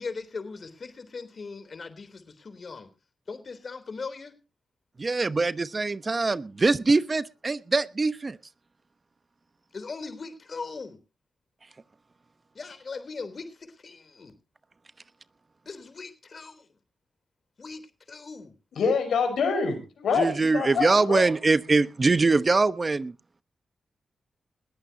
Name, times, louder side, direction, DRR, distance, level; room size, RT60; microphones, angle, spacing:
voice 1, 0.0-2.9 3.3-4.3 9.7-11.0 12.6-14.3 15.7-16.7 17.6-17.8 18.1-18.5, left 4 dB, 55° left, 11 dB, 3.6 m, -39 dB
voice 2, 5.0-8.4 20.2-23.1, right 3 dB, 40° right, 13 dB, 1.0 m, -23 dB
voice 3, 18.8-21.2, left 5 dB, 80° left, 7 dB, 5.3 m, -26 dB
21.0 x 14.0 x 2.9 m, 0.33 s
supercardioid pair, 50°, 0 cm